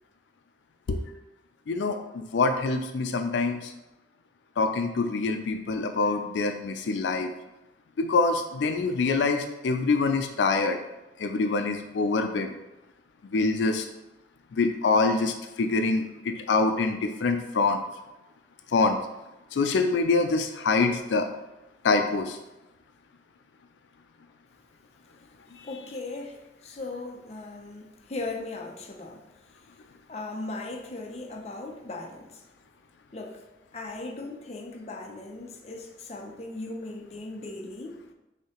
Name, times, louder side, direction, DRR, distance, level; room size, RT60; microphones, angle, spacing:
voice 1, 1.7-3.7 4.6-7.3 8.0-10.8 11.2-12.5 13.3-13.9 14.5-17.8 18.7-19.0 19.5-21.3 21.8-22.4 25.6-25.7, left 3 dB, 85° left, 6 dB, 0.4 m, -25 dB
voice 2, 25.6-29.2 30.1-32.4 33.1-33.4 33.7-38.0, left 2 dB, 35° left, 1 dB, 0.6 m, -38 dB
6.4 x 2.8 x 2.9 m, 0.98 s
head